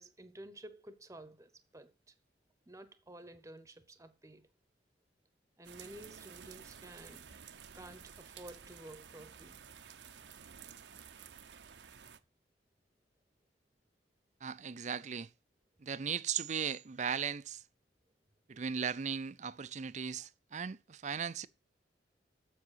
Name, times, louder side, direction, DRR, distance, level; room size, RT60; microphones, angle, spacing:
voice 1, 0.0-2.1 2.7-4.5 5.6-7.3 7.7-9.6, right 1 dB, 15° right, 0.9 m, -52 dB
sound 1, 5.6-12.2, right 7 dB, 75° right, 0.8 m, -53 dB
voice 2, 14.4-15.3 15.8-17.6 18.5-21.5, right 7 dB, 40° right, 0.5 m, -37 dB
7.5 x 7.2 x 8.0 m
head